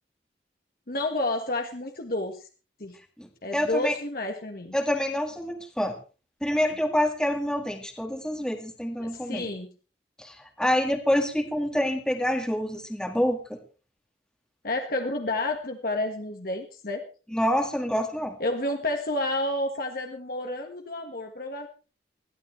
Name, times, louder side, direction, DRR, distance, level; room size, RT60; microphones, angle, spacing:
voice 1, 0.9-2.5 2.8-3.0 3.4-4.7 9.0-9.7 14.6-17.0 18.4-21.7, left 2 dB, 55° left, 3 dB, 1.6 m, -30 dB
voice 2, 3.2-4.0 4.7-6.0 6.4-9.5 10.2-13.6 17.3-18.3, equal, 5° left, 3 dB, 1.8 m, -27 dB
21.0 x 15.0 x 3.3 m, 0.35 s
head